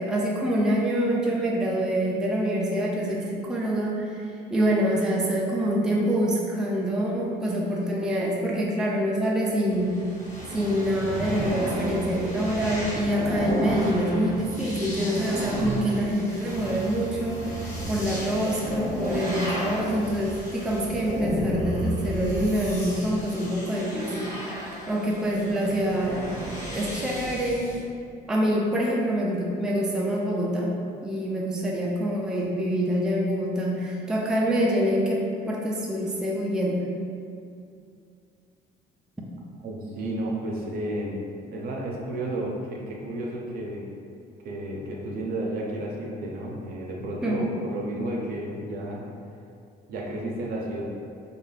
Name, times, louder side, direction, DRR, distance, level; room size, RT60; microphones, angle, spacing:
voice 1, 0.0-4.3 4.5-9.9 10.5-17.4 17.9-24.3 24.9-26.2 26.7-27.7 28.3-30.7 31.0-36.9 47.2-47.5, equal, 5° right, -3 dB, 0.3 m, -26 dB
sound 1, 9.7-27.8, equal, 20° left, 1.0 m, -33 dB
voice 2, 39.6-41.2 41.5-43.8 44.4-49.0 49.9-50.8, right 1 dB, 60° right, -2 dB, 0.6 m, -32 dB
2.5 x 2.3 x 3.2 m, 2.4 s
cardioid pair, 110°, 17 cm